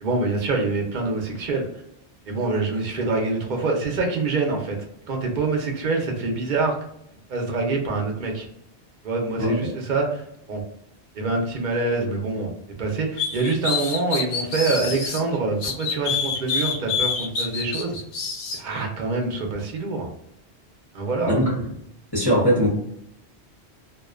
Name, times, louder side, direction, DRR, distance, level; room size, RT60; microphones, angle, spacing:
voice 1, 0.0-1.6 2.3-4.8 5.1-6.7 7.3-8.5 9.0-10.2 10.5-10.6 11.2-12.5 12.8-18.0 18.6-20.1 20.9-21.4, right 3 dB, 50° right, 1 dB, 0.7 m, -25 dB
sound 1, 13.2-15.2 15.6-18.6, left 5 dB, 80° left, 0.8 m, -27 dB
voice 2, 22.1-22.7, equal, 25° left, -5 dB, 0.7 m, -20 dB
2.5 x 2.2 x 2.4 m, 0.76 s
omnidirectional pair, 1.1 m